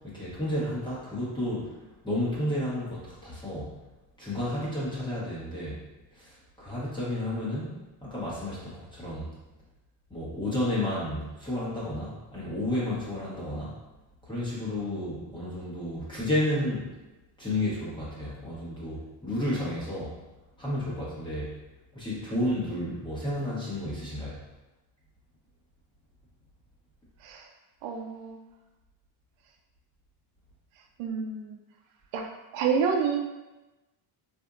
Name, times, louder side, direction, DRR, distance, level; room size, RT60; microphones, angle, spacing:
voice 1, 0.0-1.8 2.0-3.7 4.2-5.8 6.1-7.7 8.0-9.3 10.1-13.7 14.2-16.9 17.4-20.1 20.6-21.5 21.9-24.4, left 1 dB, 10° left, -8 dB, 1.0 m, -31 dB
voice 2, 27.8-28.4 31.0-31.6 32.1-33.2, right 6 dB, 80° right, 3 dB, 0.6 m, -29 dB
4.2 x 2.6 x 2.4 m, 1.1 s
cardioid pair, 150°, 49 cm